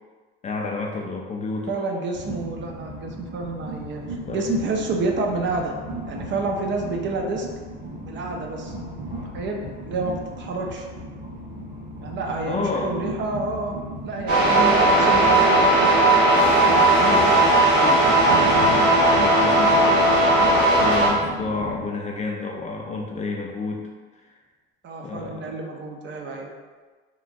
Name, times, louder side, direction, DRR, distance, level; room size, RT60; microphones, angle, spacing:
voice 1, 0.4-1.7 4.3-4.5 12.5-12.9 14.4-14.8 16.3-23.9 24.1-24.4 25.0-25.5, left 3 dB, 25° left, 0 dB, 0.3 m, -31 dB
voice 2, 1.7-4.0 4.3-5.7 6.1-7.5 8.1-8.7 9.3-10.9 12.0-13.8 14.0-15.6 24.8-26.5, right 3 dB, 40° right, 2 dB, 0.5 m, -29 dB
Train, 2.1-21.9, right 1 dB, 90° right, 1.5 m, -36 dB
sound 1, 14.3-21.1, right 1 dB, 55° right, 1.2 m, -17 dB
3.0 x 2.3 x 2.6 m, 1.4 s
supercardioid pair, 85°, 29 cm